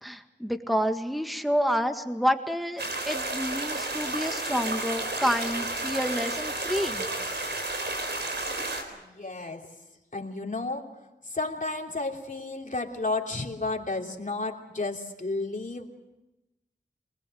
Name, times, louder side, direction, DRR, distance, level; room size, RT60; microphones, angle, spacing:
voice 1, 0.0-7.1, equal, ahead, 7 dB, 1.8 m, -29 dB
sound 1, 2.8-8.8, right 2 dB, 80° right, 3.9 m, -32 dB
voice 2, 9.0-9.7 10.1-10.8 11.3-15.9, left 3 dB, 50° left, 2 dB, 3.1 m, -32 dB
24.5 x 20.0 x 7.8 m, 0.98 s
wide cardioid pair, 50°, 18 cm